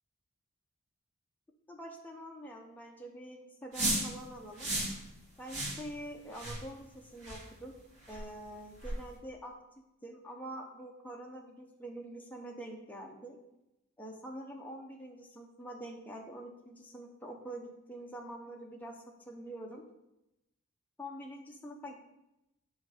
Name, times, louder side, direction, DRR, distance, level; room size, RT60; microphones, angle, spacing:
voice 1, 1.7-4.7 5.4-7.7 8.1-9.5 10.0-13.4 14.0-19.8 21.0-22.0, right 1 dB, 10° left, 0 dB, 0.7 m, -45 dB
sound 1, 3.7-4.1 4.6-5.0 5.5-5.8 6.3-6.6 7.2-7.4 8.1-8.2 8.8-9.0, right 2 dB, 60° right, 2.2 m, -33 dB
7.9 x 3.8 x 4.9 m, 0.90 s
head